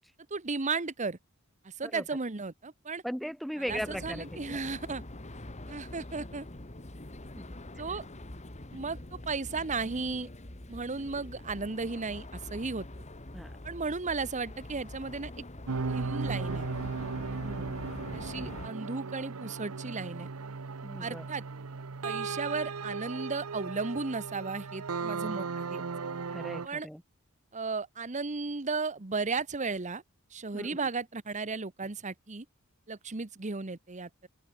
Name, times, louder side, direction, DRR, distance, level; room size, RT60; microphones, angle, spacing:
voice 1, 0.3-1.2 1.6-3.0 3.6-5.0 5.7-6.5 7.8-8.0 8.7-10.3 10.7-12.9 13.6-15.3 15.9-16.7 18.1-20.3 21.0-21.4 22.0-25.8 26.6-26.9 27.5-30.0 30.3-32.4 32.9-34.3, right 4 dB, 35° right, 1.1 m, -35 dB
voice 2, 3.0-4.6 7.4-7.6 13.3-13.5 17.4-17.9 20.8-21.2 26.3-27.0 30.5-30.8, equal, ahead, 0.4 m, -38 dB
sound 1, 3.7-18.7, left 1 dB, 30° left, 2.0 m, -44 dB
sound 2, 15.7-26.7, right 4 dB, 80° right, 0.9 m, -36 dB
head